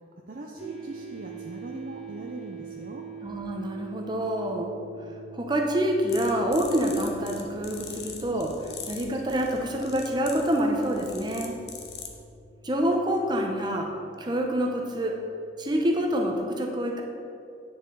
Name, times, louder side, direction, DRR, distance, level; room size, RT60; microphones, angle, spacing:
voice 1, 0.3-3.0, right 2 dB, 50° right, -1 dB, 0.6 m, -40 dB
sound 1, 0.6-15.8, right 5 dB, 5° right, 2.3 m, -45 dB
voice 2, 3.2-4.7 5.3-8.5 8.9-11.6 12.6-13.9 14.2-15.1 15.6-17.0, equal, 25° right, 1 dB, 0.9 m, -27 dB
sound 2, 6.1-12.2, left 6 dB, 65° left, 0.9 m, -43 dB
9.5 x 6.6 x 3.9 m, 2.5 s
head